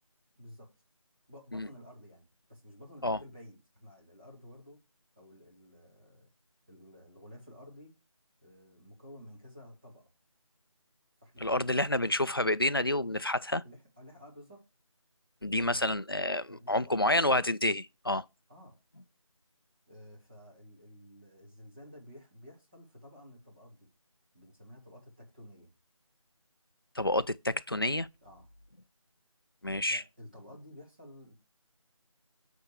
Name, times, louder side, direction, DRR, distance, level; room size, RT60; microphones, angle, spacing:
voice 1, 0.4-0.7 1.3-4.8 5.2-6.3 6.7-7.9 8.4-10.1 11.2-11.9 13.6-14.6 15.6-15.9 16.4-17.4 18.5-18.8 19.9-23.9 24.3-25.7 28.2-28.5 29.8-31.3, left 1 dB, 15° right, 2.5 m, -52 dB
voice 2, 11.4-13.6 15.4-18.2 27.0-28.1 29.6-30.0, left 1 dB, 45° left, 0.4 m, -29 dB
8.5 x 4.5 x 4.7 m
figure-of-eight pair, 180°, 18 cm